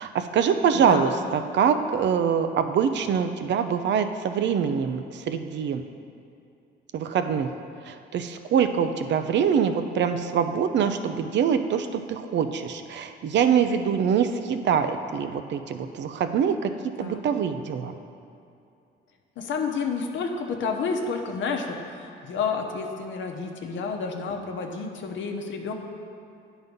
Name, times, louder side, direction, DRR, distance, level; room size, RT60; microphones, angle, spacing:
voice 1, 0.0-5.8 6.9-7.5 7.9-16.7 17.0-17.9, right 7 dB, 65° right, 8 dB, 0.5 m, -24 dB
voice 2, 0.7-1.2 17.0-17.2 19.4-25.7, left 5 dB, 70° left, 3 dB, 0.8 m, -30 dB
9.4 x 4.0 x 5.3 m, 2.6 s
cardioid pair, 90°, 20 cm